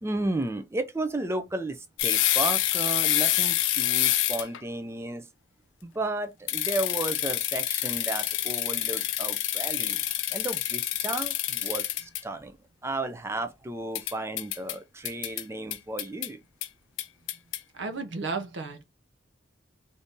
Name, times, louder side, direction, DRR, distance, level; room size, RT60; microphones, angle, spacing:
voice 1, 0.0-5.3 5.8-10.0 10.3-12.6 12.8-16.4, right 2 dB, 15° right, 0.4 m, -33 dB
sound 1, 2.0-4.6 6.5-12.2 13.9-14.7 15.0-15.4 15.7-16.3 16.6-16.7 17.0-17.6, left 13 dB, 85° left, 0.4 m, -27 dB
voice 2, 17.7-18.8, right 4 dB, 70° right, 0.6 m, -33 dB
2.7 x 2.6 x 3.5 m
head